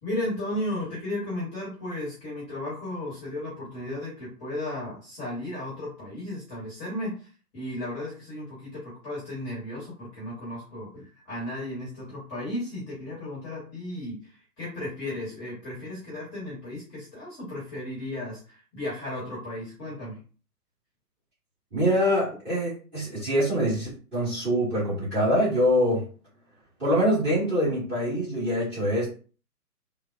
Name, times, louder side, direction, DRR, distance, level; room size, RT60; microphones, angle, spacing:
voice 1, 0.0-20.2, left 1 dB, 15° left, -7 dB, 1.0 m, -35 dB
voice 2, 21.7-26.1 26.8-29.1, equal, 15° right, -9 dB, 1.4 m, -24 dB
3.4 x 2.0 x 2.4 m, 0.38 s
figure-of-eight pair, 130°, 48 cm